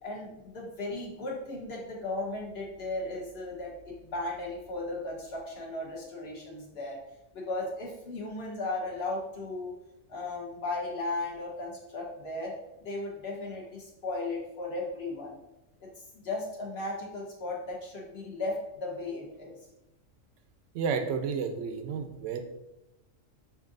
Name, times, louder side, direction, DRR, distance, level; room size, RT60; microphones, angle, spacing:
voice 1, 0.0-7.0 7.3-9.7 10.1-12.5 12.8-15.4 16.2-19.5, left 2 dB, 55° left, -3 dB, 1.3 m, -36 dB
voice 2, 20.7-22.4, right 6 dB, 70° right, 7 dB, 0.9 m, -31 dB
6.9 x 2.6 x 2.5 m, 0.91 s
omnidirectional pair, 1.4 m